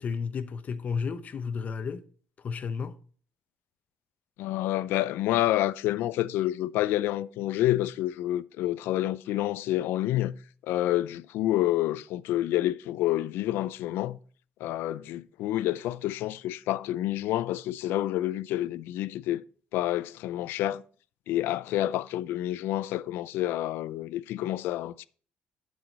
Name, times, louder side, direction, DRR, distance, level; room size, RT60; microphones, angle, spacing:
voice 1, 0.0-2.0 2.4-3.0, left 5 dB, 40° left, 0.8 m, -32 dB
voice 2, 4.4-10.3 10.6-14.2 14.6-19.4 19.7-20.8 21.3-25.1, left 14 dB, 85° left, 0.4 m, -28 dB
11.5 x 4.8 x 4.0 m
cardioid pair, 110°, 4 cm